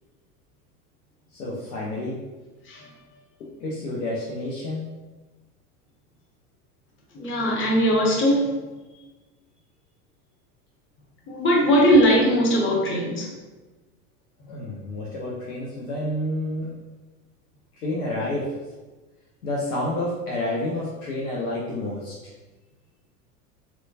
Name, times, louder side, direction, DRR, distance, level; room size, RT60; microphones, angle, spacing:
voice 1, 1.3-2.2 3.4-4.9 14.5-16.7 17.7-18.6 19.4-22.1, left 1 dB, 80° left, -4 dB, 0.7 m, -29 dB
voice 2, 7.1-8.5 11.3-13.3, equal, 25° left, -2 dB, 1.0 m, -20 dB
4.2 x 2.2 x 2.7 m, 1.2 s
hypercardioid pair, 85°, 45 cm